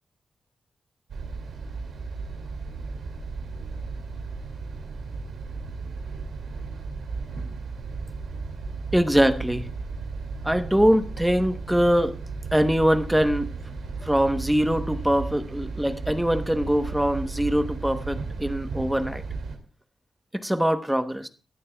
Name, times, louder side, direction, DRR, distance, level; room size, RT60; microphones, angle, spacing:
sound 1, 1.1-19.6, right 4 dB, 75° right, 2.2 m, -35 dB
voice 1, 8.9-9.7 10.4-12.1 12.5-13.5 14.0-19.2 20.4-21.3, equal, 5° right, 0.9 m, -23 dB
22.0 x 10.5 x 2.3 m
wide cardioid pair, 125°, 0 cm